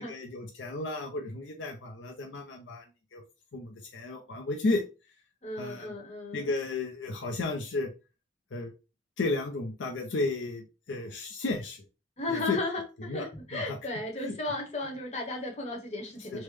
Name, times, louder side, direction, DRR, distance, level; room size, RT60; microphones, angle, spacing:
voice 1, 0.0-2.8 3.1-3.2 3.5-4.8 5.6-5.9 6.3-7.9 8.5-8.7 9.2-11.8 12.3-12.6 13.1-13.8 14.2-14.4 16.3-16.4, left 2 dB, 75° left, 2 dB, 0.5 m, -33 dB
voice 2, 5.4-6.5 12.2-16.4, left 2 dB, 35° left, 0 dB, 0.9 m, -35 dB
3.3 x 2.1 x 3.1 m, 0.30 s
head